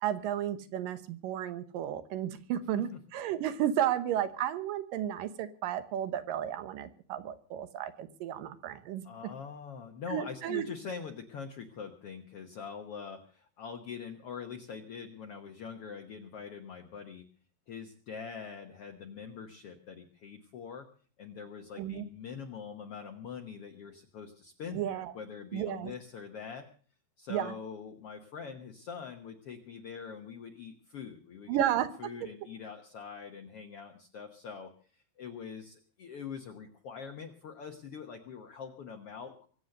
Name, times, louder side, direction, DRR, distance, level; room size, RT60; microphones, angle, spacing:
voice 1, 0.0-9.1 10.1-10.6 21.8-22.1 24.7-25.1 25.5-25.9 27.3-27.5 31.5-32.1, right 11 dB, 70° right, 12 dB, 2.5 m, -33 dB
voice 2, 9.0-17.2 17.7-20.9 21.2-26.7 27.2-31.6 32.0-39.5, left 6 dB, 75° left, 4 dB, 1.3 m, -44 dB
23.5 x 8.0 x 6.6 m, 0.44 s
omnidirectional pair, 4.5 m